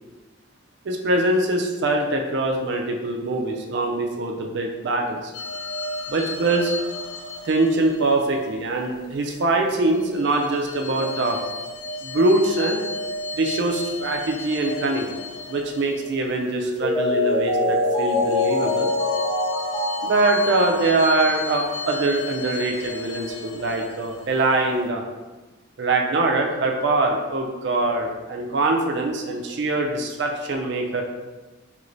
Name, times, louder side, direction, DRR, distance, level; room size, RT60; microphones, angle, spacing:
voice 1, 0.8-5.3 6.1-6.7 7.4-11.4 12.0-12.8 13.3-15.1 15.5-18.9 20.0-25.0 25.8-31.0, right 2 dB, 55° right, 2 dB, 0.4 m, -23 dB
sound 1, 5.3-9.1 9.6-17.1 17.6-24.9, left 1 dB, 80° left, 0.3 m, -34 dB
Mallet percussion, 16.6-22.1 22.5-22.6, left 2 dB, 15° left, 1.0 m, -24 dB
3.1 x 2.9 x 2.5 m, 1.2 s
head